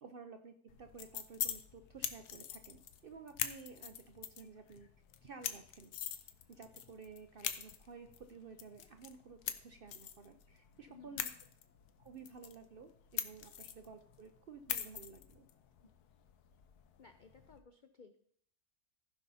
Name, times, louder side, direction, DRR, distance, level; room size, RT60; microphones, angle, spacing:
voice 1, 0.0-4.9 5.2-5.9 6.5-11.3 12.0-15.5, right 5 dB, 60° right, 6 dB, 0.6 m, -53 dB
sound 1, 0.7-17.6, left 9 dB, 90° left, 1.3 m, -45 dB
voice 2, 10.9-11.2 17.0-18.2, left 5 dB, 70° left, 8 dB, 0.4 m, -58 dB
15.0 x 5.4 x 4.1 m, 0.64 s
omnidirectional pair, 1.6 m